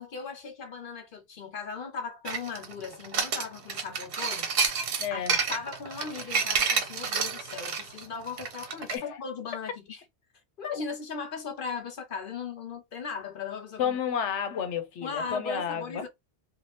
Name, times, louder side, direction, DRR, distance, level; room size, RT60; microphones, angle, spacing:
voice 1, 0.0-4.5 5.1-10.0 10.6-14.0 15.0-16.1, left 5 dB, 55° left, 0.8 m, -38 dB
sound 1, 2.2-8.9, right 5 dB, 60° right, 0.8 m, -29 dB
voice 2, 5.0-5.4 8.9-9.2 10.7-10.8 13.8-16.1, left 7 dB, 85° left, 1.0 m, -31 dB
2.7 x 2.4 x 3.2 m
omnidirectional pair, 1.2 m